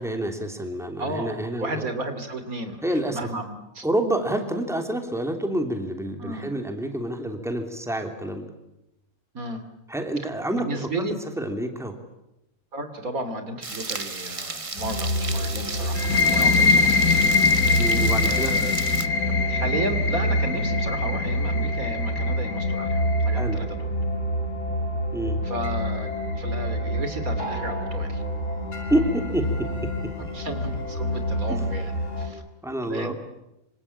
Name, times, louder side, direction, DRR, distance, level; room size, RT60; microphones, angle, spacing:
voice 1, 0.0-1.9 2.8-3.2 3.8-8.5 9.9-10.7 11.0-11.1 11.4-12.0 17.8-18.5 23.3-23.6 25.1-25.4 28.9-29.9 31.5-31.6 32.6-33.1, right 1 dB, ahead, 5 dB, 3.1 m, -28 dB
voice 2, 1.0-3.8 6.2-6.5 9.3-9.6 10.5-11.1 12.7-17.2 18.2-18.7 19.5-23.0 23.2-23.9 25.4-26.1 26.4-28.2 30.3-32.4 32.8-33.1, right 2 dB, 75° right, 8 dB, 3.2 m, -33 dB
sound 1, 13.6-19.1, right 3 dB, 25° right, 1.2 m, -34 dB
sound 2, 14.8-32.3, equal, 55° left, 7.2 m, -27 dB
sound 3, 16.0-23.4, left 4 dB, 85° left, 1.8 m, -23 dB
26.0 x 26.0 x 8.7 m, 0.87 s
omnidirectional pair, 1.5 m